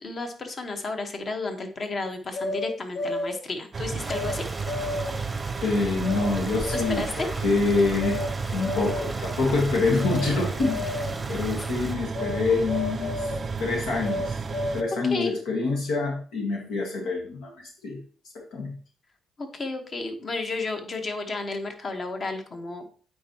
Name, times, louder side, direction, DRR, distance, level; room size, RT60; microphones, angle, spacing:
voice 1, 0.0-4.5 6.7-7.3 15.1-15.3 19.4-22.8, left 3 dB, 45° left, 5 dB, 1.2 m, -32 dB
sound 1, 2.3-3.4 4.1-4.4 4.7-5.3 6.0-6.3 6.6-7.2 8.0-8.3 8.6-9.2 10.0-10.3 10.6-11.2 12.1-12.4 12.7-13.5 14.0-15.1, left 2 dB, 65° left, 0.9 m, -32 dB
sound 2, 3.7-14.8, right 5 dB, 40° right, 0.4 m, -32 dB
Stream, 4.0-12.0, right 1 dB, 5° right, 0.9 m, -39 dB
voice 2, 5.6-8.2 8.5-10.9 11.3-13.3 13.6-14.4 14.7-17.5 17.8-18.0 18.5-18.8, left 3 dB, 90° left, 0 dB, 1.6 m, -26 dB
8.4 x 4.6 x 2.9 m, 0.42 s
cardioid pair, 90°, 0 cm